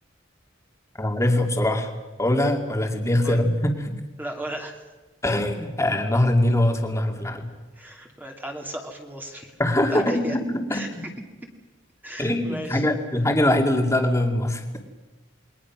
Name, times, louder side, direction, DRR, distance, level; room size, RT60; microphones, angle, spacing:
voice 1, 1.0-1.9 2.2-3.9 5.2-7.5 9.6-11.0 12.2-14.6, left 1 dB, 15° left, 4 dB, 2.5 m, -22 dB
voice 2, 4.2-4.8 7.7-9.6 9.9-10.4 10.7-10.9 12.0-12.9, right 1 dB, 10° right, 1 dB, 2.5 m, -35 dB
28.5 x 22.0 x 6.2 m, 1.2 s
head